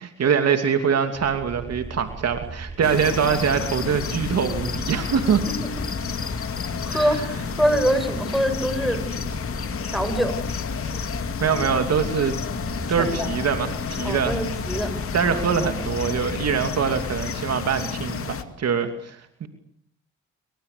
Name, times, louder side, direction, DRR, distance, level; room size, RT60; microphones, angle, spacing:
voice 1, 0.0-5.4 6.9-7.1 11.4-12.4 12.9-14.4 15.1-19.5, right 7 dB, 55° right, 7 dB, 2.8 m, -23 dB
sound 1, 1.1-17.3, right 3 dB, 35° right, 7.1 m, -38 dB
sound 2, 2.8-18.4, left 6 dB, 45° left, 2.6 m, -30 dB
voice 2, 5.5-6.0 6.8-7.2 7.5-9.0 9.9-10.4 13.0-13.3 14.0-14.9 15.2-15.3, equal, ahead, 8 dB, 6.5 m, -24 dB
27.5 x 25.0 x 6.9 m, 0.66 s
cardioid pair, 90°, 30 cm